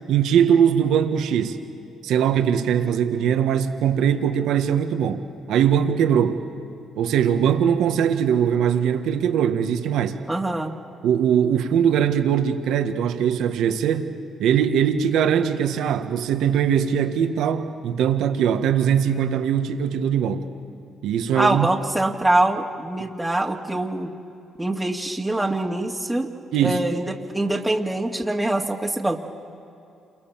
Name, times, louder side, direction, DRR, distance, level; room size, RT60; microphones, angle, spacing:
voice 1, 0.1-1.6 2.0-6.4 7.0-10.2 11.0-14.1 14.4-20.4 21.0-21.7 26.5-26.8, right 8 dB, 75° right, 7 dB, 1.6 m, -21 dB
voice 2, 10.3-10.7 21.3-24.1 24.6-26.3 26.6-29.2, right 1 dB, 10° right, -1 dB, 2.2 m, -24 dB
28.0 x 23.0 x 7.5 m, 2.6 s
supercardioid pair, 60°, 0 cm